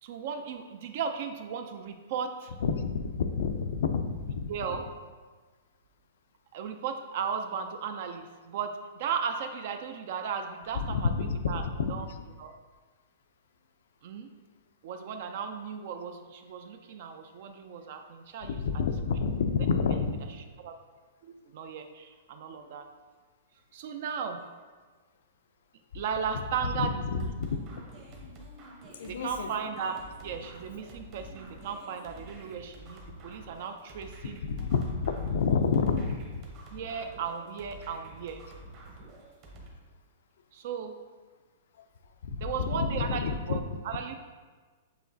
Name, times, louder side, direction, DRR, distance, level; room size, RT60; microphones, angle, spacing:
voice 1, 0.0-2.6 4.5-4.8 6.5-11.6 11.9-12.1 12.4-12.5 14.0-14.3 14.8-18.7 20.6-20.7 21.2-22.9 23.7-24.4 25.9-27.3 29.1-34.4 36.7-38.4 40.5-41.0 42.4-44.2, right 6 dB, 55° right, 7 dB, 0.3 m, -36 dB
voice 2, 2.6-4.7 10.8-12.2 18.4-20.2 26.7-27.5 28.2-28.3 29.0-29.5 34.2-36.5 42.2-43.6, left 5 dB, 70° left, 9 dB, 0.4 m, -29 dB
sound 1, 27.2-39.7, right 1 dB, 35° right, 0.9 m, -49 dB
6.8 x 2.9 x 2.7 m, 1.4 s
hypercardioid pair, 150°, 0 cm